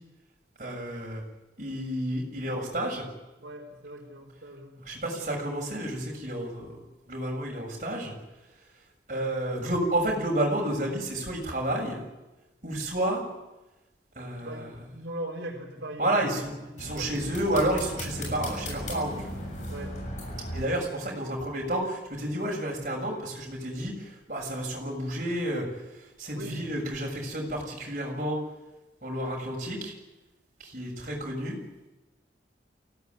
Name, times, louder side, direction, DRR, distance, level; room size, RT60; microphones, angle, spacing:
voice 1, 0.6-1.2 1.6-3.1 4.9-6.7 7.1-8.1 9.1-12.0 12.6-13.2 14.2-14.7 16.0-19.3 20.5-23.9 24.3-25.7 26.2-28.4 29.0-29.9 30.6-31.6, right 1 dB, 45° right, -2 dB, 7.1 m, -30 dB
voice 2, 3.4-4.8 14.4-17.1 19.7-19.9 26.3-26.6, right 1 dB, 80° right, -1 dB, 4.5 m, -40 dB
sound 1, 16.8-20.6, equal, 40° left, 7.1 m, -36 dB
24.0 x 17.5 x 9.7 m, 1.0 s
head